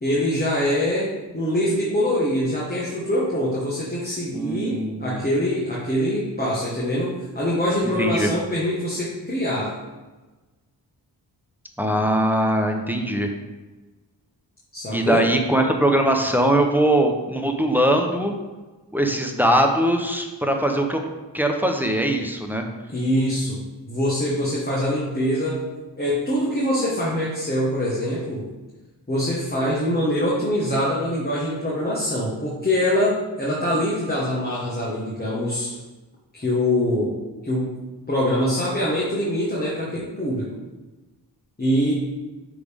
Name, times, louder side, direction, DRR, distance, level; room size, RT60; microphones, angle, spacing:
voice 1, 0.0-9.8 14.7-15.3 22.9-25.7 26.0-28.5 29.1-35.7 36.3-37.8 38.1-40.5 41.6-41.9, left 1 dB, 20° left, -6 dB, 1.6 m, -24 dB
voice 2, 4.3-5.2 7.8-8.3 11.8-13.3 14.9-18.3 18.9-21.0 21.3-22.6, right 1 dB, 5° right, 3 dB, 0.8 m, -21 dB
9.0 x 3.5 x 3.6 m, 1.2 s
cardioid pair, 55°, 44 cm